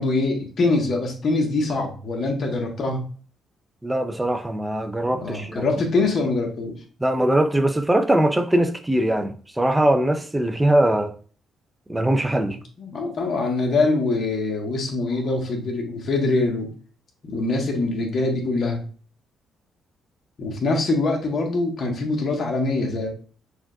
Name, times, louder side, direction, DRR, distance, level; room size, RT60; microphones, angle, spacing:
voice 1, 0.0-3.0 5.1-6.8 12.8-16.7 17.2-18.8 20.4-23.1, left 3 dB, 55° left, 1.2 m, -24 dB
voice 2, 3.8-5.6 7.0-11.1 11.9-12.6, right 1 dB, 10° right, 0.5 m, -21 dB
6.1 x 2.5 x 2.3 m
cardioid pair, 90°, 0 cm